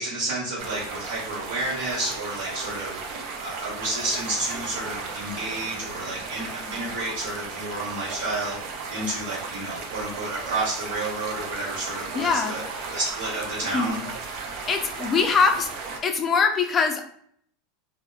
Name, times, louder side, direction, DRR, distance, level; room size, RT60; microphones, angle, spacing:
voice 1, 0.0-3.0 3.4-8.6 8.9-12.6 12.9-14.0, right 2 dB, 85° right, -7 dB, 1.0 m, -30 dB
sound 1, 0.6-16.0, right 4 dB, 60° right, 0.5 m, -35 dB
voice 2, 12.1-12.6 13.7-14.0 14.7-15.7 16.0-17.1, left 5 dB, 30° left, 5 dB, 0.4 m, -23 dB
2.6 x 2.0 x 2.3 m, 0.64 s
hypercardioid pair, 110°, 0 cm